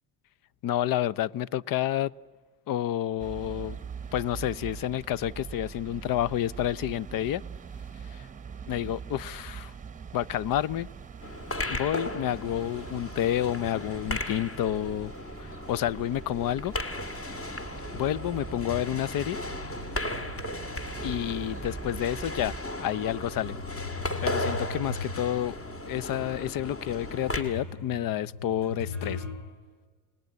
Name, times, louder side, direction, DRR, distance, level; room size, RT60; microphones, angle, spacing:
voice 1, 0.6-2.1 2.7-3.8 4.1-7.4 8.1-8.3 8.7-9.7 10.1-10.9 11.7-15.1 15.4-16.7 17.9-19.4 21.0-22.5 22.8-23.6 24.2-25.6 25.9-29.2, left 12 dB, 50° left, 0.7 m, -29 dB
sound 1, 3.2-22.6, right 6 dB, 15° right, 1.0 m, -43 dB
sound 2, 11.2-27.4, left 1 dB, 30° left, 2.6 m, -36 dB
sound 3, 11.5-16.5 16.8-21.5 22.1-22.2 22.9-29.3, left 4 dB, 70° left, 7.3 m, -41 dB
29.0 x 19.5 x 9.5 m
cardioid pair, 105°, 44 cm